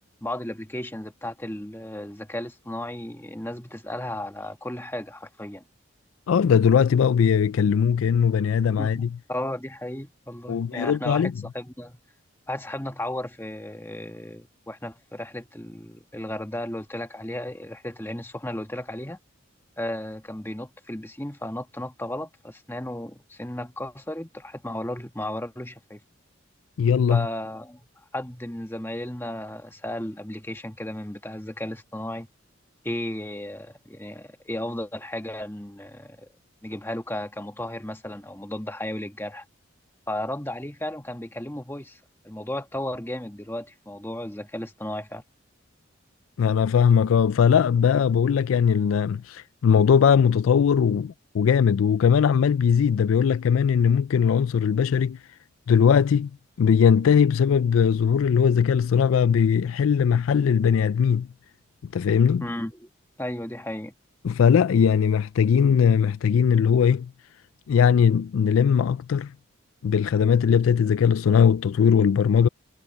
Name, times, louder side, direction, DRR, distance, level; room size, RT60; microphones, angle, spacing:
voice 1, 0.2-5.6 8.8-12.0 12.5-19.2 19.8-26.0 27.1-27.8 28.1-32.3 32.8-36.3 36.6-39.4 40.1-45.2 62.4-62.9 63.2-63.9, left 1 dB, 10° left, 1.5 m, -34 dB
voice 2, 6.3-9.1 10.5-11.3 26.8-27.3 46.4-55.2 55.7-56.3 56.6-61.3 61.9-62.4 64.2-67.1 67.7-69.3 69.8-72.5, left 7 dB, 80° left, 0.3 m, -20 dB
head